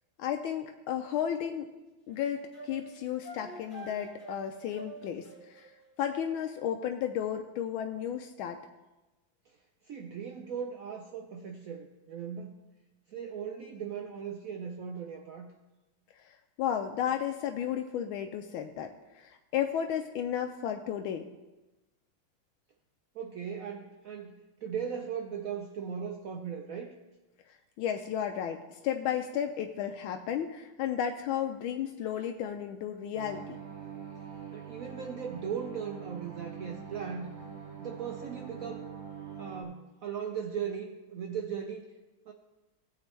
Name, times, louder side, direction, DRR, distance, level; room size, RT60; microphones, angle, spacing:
voice 1, 0.2-1.7 2.1-5.7 6.0-8.6 16.6-21.3 27.8-33.6, left 9 dB, 80° left, 5 dB, 1.4 m, -33 dB
sound 1, 2.1-6.6, right 2 dB, 25° left, 1.6 m, -47 dB
voice 2, 9.8-12.5 13.1-15.5 23.1-27.0 34.5-37.3 37.8-38.9 39.4-41.8 42.3-42.4, right 7 dB, 90° right, 3 dB, 0.7 m, -38 dB
sound 2, 33.1-39.6, right 7 dB, 70° right, 2.2 m, -44 dB
16.0 x 7.3 x 3.2 m, 1.1 s
omnidirectional pair, 2.2 m